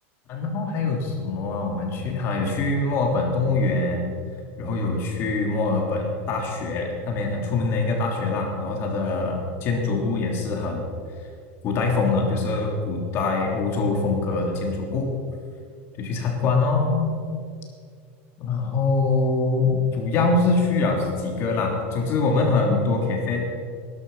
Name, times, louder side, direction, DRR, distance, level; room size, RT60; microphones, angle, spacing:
voice 1, 0.3-4.2 4.6-10.9 11.6-15.1 16.0-17.1 18.4-23.5, left 3 dB, 35° left, 1 dB, 3.2 m, -24 dB
19.0 x 11.5 x 5.6 m, 2.2 s
supercardioid pair, 165°, 7 cm